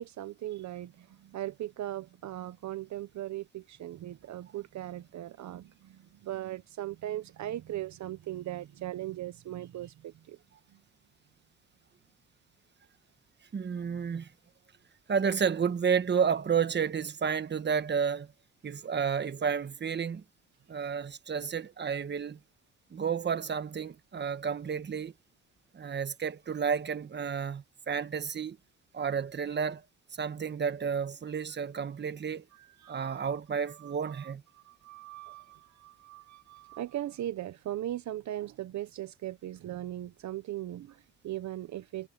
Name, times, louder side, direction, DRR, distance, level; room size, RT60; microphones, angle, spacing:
voice 1, 0.0-10.4 10.7-10.8 32.5-33.4 33.7-42.1, right 13 dB, 70° right, 1.0 m, -39 dB
voice 2, 13.5-14.3 15.1-18.3 18.6-20.2 20.7-22.4 22.9-25.1 25.7-28.6 28.9-29.8 30.1-32.5 32.9-34.4, right 6 dB, 35° right, 1.3 m, -31 dB
cardioid pair, 90°, 30 cm